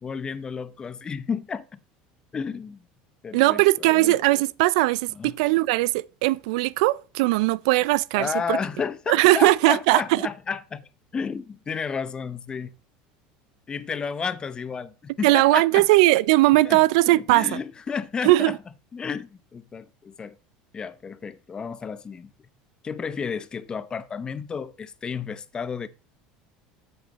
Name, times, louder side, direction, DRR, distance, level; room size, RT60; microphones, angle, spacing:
voice 1, 0.0-1.8 2.3-2.9 3.2-4.1 5.1-5.4 8.1-10.8 11.1-12.7 13.7-15.9 16.6-16.8 17.3-18.6 18.9-20.4 20.7-22.3 22.8-25.9, left 6 dB, 25° left, 0.6 m, -32 dB
voice 2, 3.3-8.6 9.1-10.2 15.2-17.6 18.2-18.6, right 19 dB, 80° right, 0.3 m, -19 dB
8.9 x 7.9 x 4.0 m
supercardioid pair, 130°, 4 cm